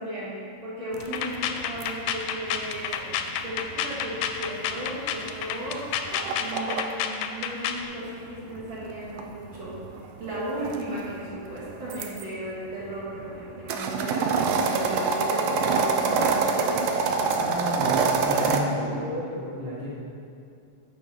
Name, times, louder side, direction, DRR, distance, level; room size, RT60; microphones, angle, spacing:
voice 1, 0.0-5.9 6.3-9.8 10.2-16.9, right 1 dB, 50° right, -8 dB, 2.2 m, -35 dB
sound 1, 0.9-6.8 8.1-12.2 12.8-18.6, right 5 dB, 80° right, 1.5 m, -27 dB
sound 2, 1.0-7.9, left 8 dB, 90° left, 2.0 m, -30 dB
voice 2, 17.4-19.9, equal, 10° right, -8 dB, 1.1 m, -32 dB
9.5 x 6.0 x 4.0 m, 2.5 s
omnidirectional pair, 3.4 m